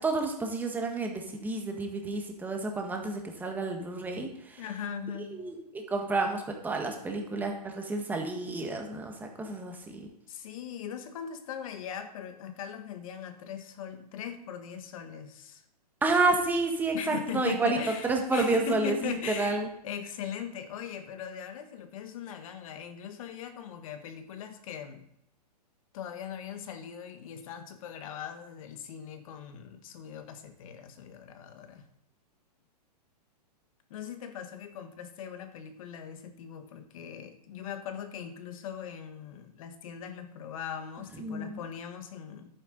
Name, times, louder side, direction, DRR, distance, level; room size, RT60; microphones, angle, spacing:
voice 1, 0.0-4.6 5.3-5.6 5.9-10.1 16.0-17.8 18.0-19.7 41.2-41.6, right 3 dB, 10° right, 2 dB, 1.5 m, -30 dB
voice 2, 4.6-5.3 10.3-15.6 16.9-25.0 25.9-31.8 33.9-42.5, left 8 dB, 55° left, 8 dB, 1.5 m, -40 dB
11.0 x 8.9 x 4.0 m, 0.76 s
hypercardioid pair, 140°, 21 cm